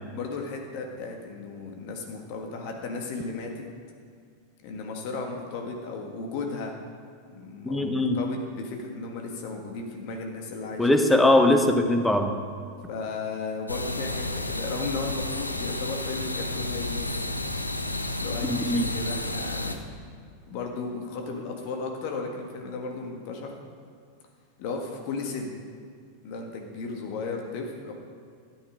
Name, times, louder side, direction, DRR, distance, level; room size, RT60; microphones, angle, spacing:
voice 1, 0.1-3.6 4.6-6.7 7.3-10.9 12.9-17.1 18.2-19.8 20.5-23.6 24.6-25.5 26.2-27.9, left 4 dB, 45° left, 2 dB, 1.6 m, -35 dB
voice 2, 7.6-8.2 10.8-12.4 18.4-18.9, left 1 dB, 5° left, 6 dB, 1.1 m, -21 dB
sound 1, 13.7-19.8, left 2 dB, 85° left, 0.8 m, -31 dB
13.0 x 8.7 x 5.1 m, 2.2 s
figure-of-eight pair, 90°, 0 cm